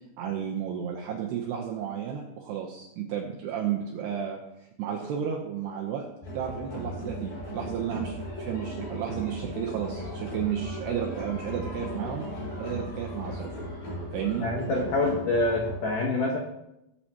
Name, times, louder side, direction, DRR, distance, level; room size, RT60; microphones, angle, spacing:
voice 1, 0.2-4.4 4.8-6.1 6.3-12.3 12.6-13.5 14.1-14.5, right 9 dB, 85° right, 1 dB, 2.4 m, -32 dB
sound 1, 6.2-15.8, equal, 40° left, 6.2 m, -37 dB
voice 2, 14.4-16.4, left 2 dB, 75° left, -1 dB, 1.9 m, -26 dB
19.5 x 8.8 x 3.0 m, 0.88 s
omnidirectional pair, 5.9 m